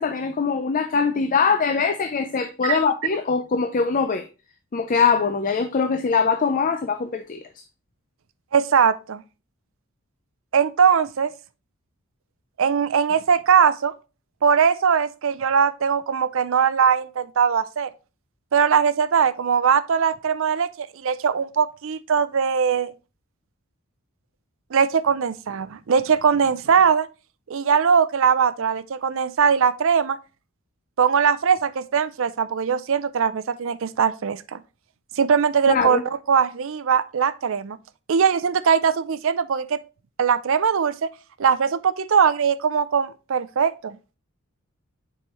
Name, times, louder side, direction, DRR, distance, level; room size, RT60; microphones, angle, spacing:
voice 1, 0.0-4.3 4.7-7.4 35.7-36.0, left 5 dB, 40° left, 0.5 m, -22 dB
voice 2, 8.5-9.2 10.5-11.3 12.6-13.9 14.4-17.9 18.5-22.9 24.7-27.1 27.5-30.2 31.0-34.6 35.2-36.0 36.3-37.8 38.1-39.8 40.2-40.9 41.4-44.0, right 6 dB, 65° right, 0.5 m, -20 dB
7.0 x 4.9 x 3.0 m
head